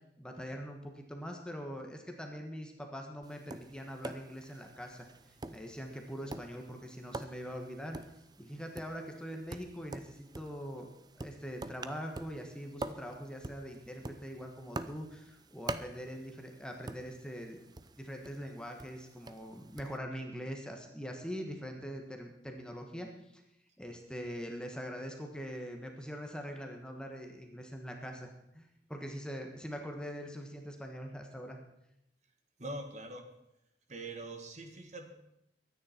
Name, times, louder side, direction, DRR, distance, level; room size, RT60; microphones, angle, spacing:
voice 1, 0.2-8.0 8.4-17.6 18.0-23.4 23.8-31.6, equal, 5° left, 2 dB, 1.4 m, -43 dB
Tap, 3.2-20.0, right 2 dB, 20° right, 0.6 m, -46 dB
voice 2, 32.6-33.2 33.9-35.1, right 2 dB, 40° right, 4 dB, 1.8 m, -43 dB
23.0 x 9.6 x 4.4 m, 0.82 s
head